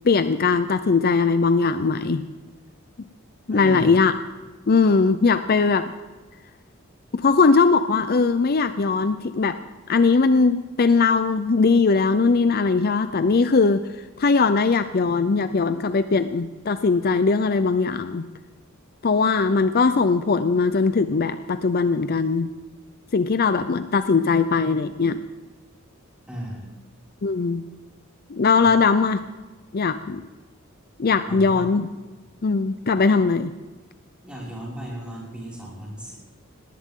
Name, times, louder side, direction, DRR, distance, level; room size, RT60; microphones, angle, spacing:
voice 1, 0.0-2.2 3.5-4.1 4.7-5.9 7.1-9.6 9.9-13.8 14.2-18.2 19.0-22.5 23.1-25.2 27.2-27.6 28.3-29.2 29.7-30.2 31.0-31.9 32.4-33.5, left 4 dB, 45° left, 11 dB, 0.5 m, -20 dB
voice 2, 3.5-3.9 26.3-26.6 28.6-28.7 31.3-31.6 34.2-36.1, equal, 5° right, -5 dB, 5.7 m, -35 dB
18.5 x 18.5 x 3.7 m, 1.2 s
head